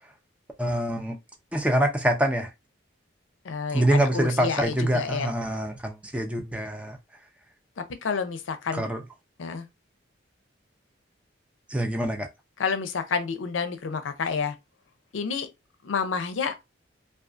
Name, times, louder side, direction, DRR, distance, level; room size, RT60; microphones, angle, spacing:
voice 1, 0.6-1.2 1.5-2.5 3.7-7.0 8.7-9.0 11.7-12.3, right 1 dB, 5° right, 0.4 m, -25 dB
voice 2, 3.4-5.3 7.8-8.9 9.4-9.7 12.6-14.6 15.1-15.5 15.8-16.5, left 5 dB, 80° left, 0.5 m, -29 dB
2.4 x 2.3 x 2.4 m
head